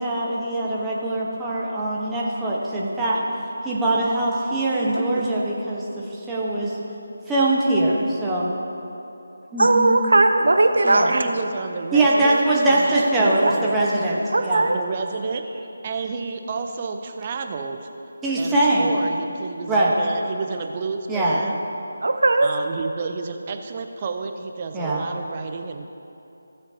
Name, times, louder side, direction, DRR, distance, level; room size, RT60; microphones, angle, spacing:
voice 1, 0.0-3.2 3.6-6.8 7.3-8.5 9.5-10.0 10.8-11.1 11.9-14.7 18.2-18.9 19.7-19.9 21.1-21.4 24.7-25.0, right 2 dB, 10° right, -6 dB, 1.1 m, -22 dB
voice 2, 9.6-11.2 13.4-13.6 14.3-14.7 22.0-22.5, right 2 dB, 65° right, 7 dB, 0.8 m, -18 dB
voice 3, 11.1-13.8 14.7-17.9 18.4-21.6 22.4-26.0, right 4 dB, 30° right, 5 dB, 0.6 m, -31 dB
15.5 x 7.6 x 2.8 m, 2.9 s
figure-of-eight pair, 155°, 0 cm